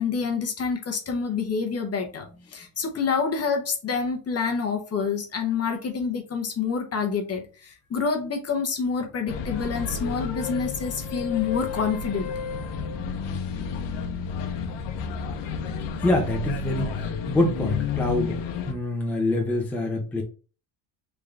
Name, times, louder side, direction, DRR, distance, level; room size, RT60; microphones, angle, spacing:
voice 1, 0.0-12.3, left 5 dB, 30° left, 4 dB, 0.8 m, -27 dB
sound 1, 9.3-18.7, left 5 dB, 55° left, 0.9 m, -31 dB
voice 2, 16.0-20.2, left 2 dB, 5° left, 0 dB, 0.6 m, -26 dB
3.7 x 3.5 x 3.3 m, 0.35 s
cardioid pair, 155°, 50 cm